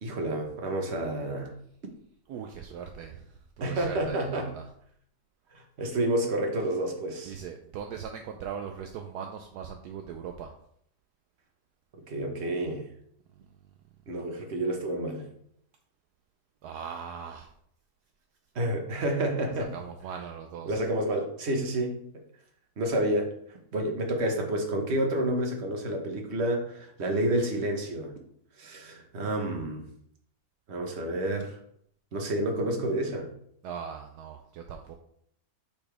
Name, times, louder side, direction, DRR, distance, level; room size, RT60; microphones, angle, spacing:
voice 1, 0.0-1.5 3.6-4.5 5.5-7.3 12.1-12.8 14.1-15.3 18.5-19.7 20.6-22.0 22.8-23.3 23.7-28.2 28.6-29.9 30.7-31.6 32.1-33.3, right 1 dB, 40° right, 2 dB, 1.4 m, -29 dB
voice 2, 2.3-4.6 7.3-10.5 16.6-17.5 19.5-20.8 33.6-34.9, right 7 dB, 75° right, 4 dB, 1.1 m, -40 dB
8.7 x 4.3 x 3.4 m, 0.68 s
omnidirectional pair, 1.9 m